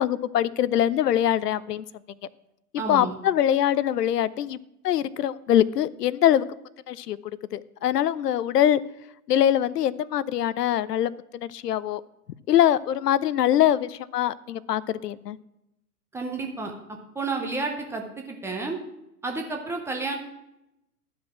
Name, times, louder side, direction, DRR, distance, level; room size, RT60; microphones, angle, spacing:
voice 1, 0.0-1.8 2.7-4.6 4.8-6.4 6.9-7.2 7.5-8.8 9.3-12.0 12.5-15.4, left 11 dB, 80° left, 18 dB, 0.6 m, -23 dB
voice 2, 2.8-3.2 16.1-16.7 17.1-18.8 19.2-20.2, right 3 dB, 5° right, 2 dB, 0.4 m, -31 dB
11.5 x 5.2 x 6.0 m, 0.87 s
hypercardioid pair, 115°, 47 cm